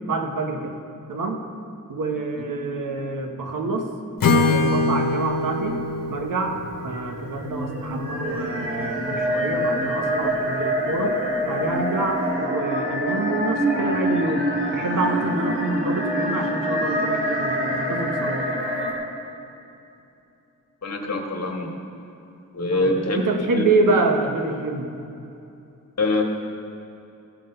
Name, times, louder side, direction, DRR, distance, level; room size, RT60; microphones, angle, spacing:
voice 1, 0.1-0.8 1.1-1.4 1.9-3.9 4.3-5.8 6.1-11.2 11.4-14.5 14.7-18.5 22.7-24.9, right 3 dB, 70° right, 4 dB, 1.2 m, -26 dB
Acoustic guitar / Strum, 4.2-8.2, left 3 dB, 80° left, 1.0 m, -24 dB
sound 1, 6.3-18.9, equal, 40° right, 2.7 m, -26 dB
voice 2, 20.8-21.7 22.5-23.2 23.6-23.7 26.0-26.2, left 2 dB, 50° left, 2 dB, 1.6 m, -24 dB
15.0 x 5.9 x 5.4 m, 2.7 s
cardioid pair, 60°, 33 cm